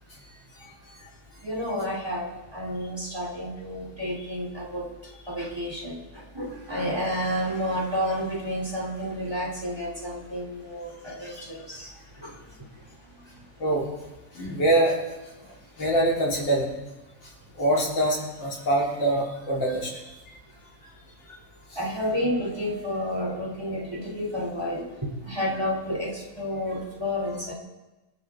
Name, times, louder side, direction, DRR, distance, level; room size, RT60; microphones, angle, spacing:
voice 1, 0.6-0.9 1.4-4.9 5.3-13.5 21.7-27.5, equal, 15° right, -1 dB, 3.3 m, -31 dB
voice 2, 14.3-14.9 15.8-16.8 17.6-19.9, right 1 dB, 90° left, -4 dB, 4.7 m, -24 dB
27.0 x 12.0 x 3.7 m, 1.1 s
omnidirectional pair, 2.0 m